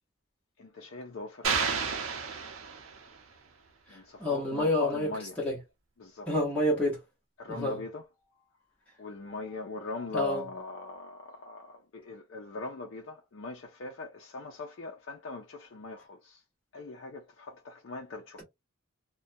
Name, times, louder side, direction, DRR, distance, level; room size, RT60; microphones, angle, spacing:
voice 1, 0.6-1.7 3.9-5.4 6.0-6.3 7.4-8.1 9.0-16.4 16.7-18.4, left 3 dB, 60° left, 0.4 m, -41 dB
sound 1, 1.4-3.2, right 5 dB, 80° right, 0.7 m, -31 dB
voice 2, 4.2-5.1 5.4-5.6 6.3-7.0 7.5-7.8 10.1-10.4, left 1 dB, 5° left, 0.9 m, -28 dB
2.4 x 2.2 x 2.6 m
head